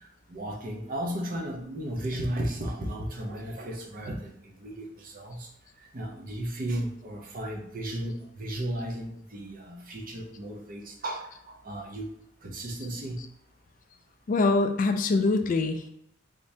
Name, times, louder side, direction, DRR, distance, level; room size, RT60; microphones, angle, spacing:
voice 1, 0.0-5.5 5.9-12.2 12.4-13.2, right 1 dB, 45° right, 1 dB, 0.6 m, -35 dB
voice 2, 14.3-15.9, left 3 dB, 40° left, 6 dB, 0.3 m, -24 dB
3.6 x 2.7 x 3.2 m, 0.77 s
head